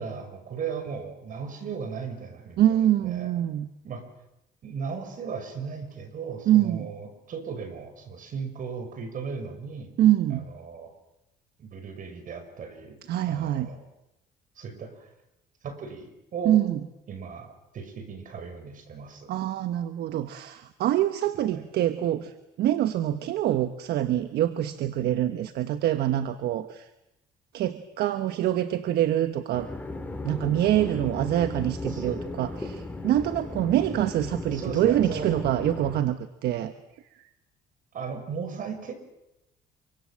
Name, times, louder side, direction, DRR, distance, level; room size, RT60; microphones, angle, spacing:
voice 1, 0.0-2.7 3.0-3.3 3.8-4.0 4.6-9.9 10.3-10.9 11.6-13.0 13.3-13.8 14.6-15.1 15.6-16.6 17.1-19.3 21.5-21.6 31.9-32.2 34.5-35.3 37.9-38.9, right 6 dB, 55° right, 8 dB, 6.1 m, -37 dB
voice 2, 2.6-3.7 6.5-6.9 10.0-10.5 13.1-13.7 16.4-16.8 19.3-26.9 27.5-29.7 30.2-36.7, right 12 dB, 75° right, 11 dB, 1.2 m, -25 dB
sound 1, 29.5-36.0, left 2 dB, 10° left, 3.2 m, -36 dB
27.0 x 25.0 x 7.6 m, 0.88 s
cardioid pair, 110°, 17 cm